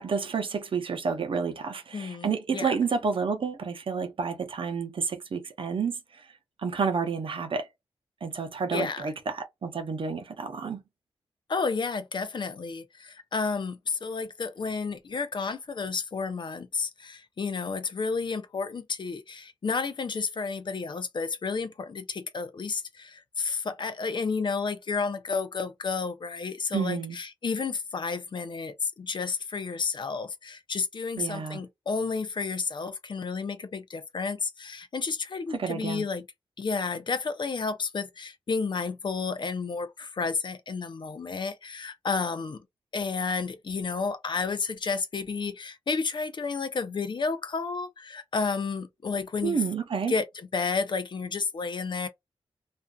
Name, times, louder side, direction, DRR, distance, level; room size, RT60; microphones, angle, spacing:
voice 1, 0.0-6.0 6.6-7.7 8.2-10.8 26.7-27.2 31.2-31.6 35.5-36.0 49.4-50.1, right 5 dB, 60° right, 0.7 m, -30 dB
voice 2, 1.9-2.7 8.7-9.1 11.5-36.2 36.6-42.6 42.9-49.6 50.1-52.1, left 4 dB, 50° left, 0.5 m, -31 dB
2.5 x 2.4 x 2.3 m
cardioid pair, 55°, 10 cm